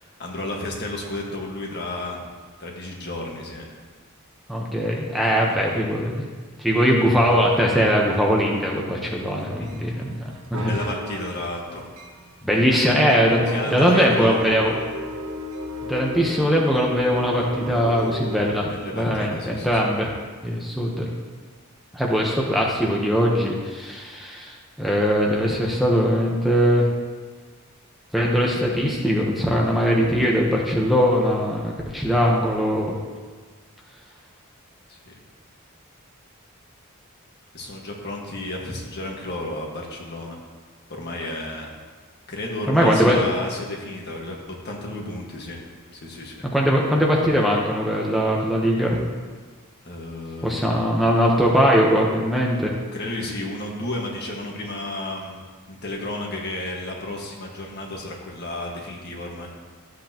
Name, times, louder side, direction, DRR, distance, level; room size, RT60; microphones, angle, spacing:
voice 1, 0.0-2.2 2.6-3.7 5.2-5.8 9.6-9.7 10.6-11.8 13.5-14.5 18.7-19.9 34.9-35.1 37.5-40.4 40.9-41.7 42.3-44.4 44.6-45.6 45.9-46.4 49.8-50.7 52.9-55.4 55.7-59.5, left 1 dB, 50° left, -1 dB, 1.6 m, -32 dB
voice 2, 4.5-6.2 6.6-10.8 12.4-14.7 15.9-20.1 20.4-21.1 21.9-26.9 28.1-33.0 42.7-43.2 46.5-49.0 50.4-52.7, equal, ahead, -3 dB, 1.0 m, -21 dB
sound 1, 9.7-18.6, equal, 90° right, 1.1 m, -35 dB
13.0 x 7.9 x 3.0 m, 1.5 s
head